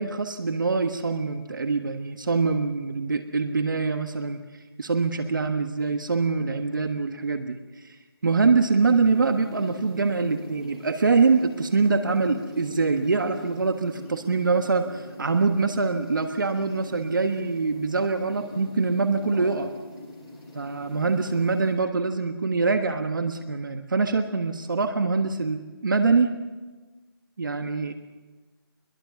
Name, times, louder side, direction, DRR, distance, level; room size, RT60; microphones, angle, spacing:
voice 1, 0.0-4.4 4.8-7.6 7.8-8.0 8.2-19.7 20.5-26.4 27.4-27.9, right 4 dB, 55° right, 7 dB, 1.4 m, -24 dB
sound 1, 8.8-21.7, left 2 dB, ahead, 4.7 m, -42 dB
23.0 x 21.5 x 7.1 m, 1.3 s
hypercardioid pair, 175°, 13 cm